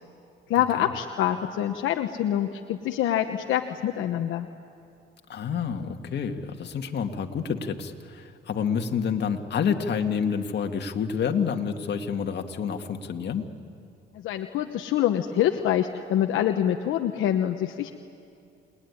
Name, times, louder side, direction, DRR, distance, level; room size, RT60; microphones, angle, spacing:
voice 1, 0.5-4.5 14.1-17.9, left 11 dB, 85° left, 5 dB, 1.1 m, -25 dB
voice 2, 5.3-13.5, left 6 dB, 60° left, 4 dB, 2.1 m, -28 dB
28.5 x 20.5 x 9.8 m, 2.5 s
cardioid pair, 90°, 20 cm